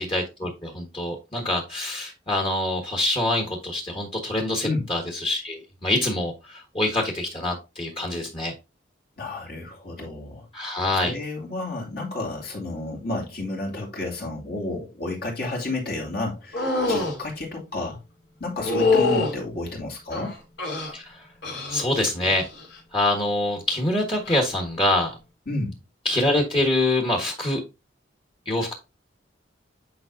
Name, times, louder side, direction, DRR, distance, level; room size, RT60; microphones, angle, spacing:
voice 1, 0.0-8.5 10.5-11.2 20.9-21.3 21.7-22.5 22.9-25.1 26.0-27.6 28.4-28.7, left 1 dB, 30° left, 1.5 m, -25 dB
voice 2, 9.2-10.5 11.0-18.0 18.4-20.4 25.5-25.8, left 2 dB, 55° left, 2.6 m, -31 dB
sound 1, 16.5-17.2 18.6-19.4 20.1-20.9 21.4-21.9 22.2-22.7 24.2-24.4, left 3 dB, 75° left, 3.0 m, -24 dB
9.3 x 4.8 x 2.7 m
head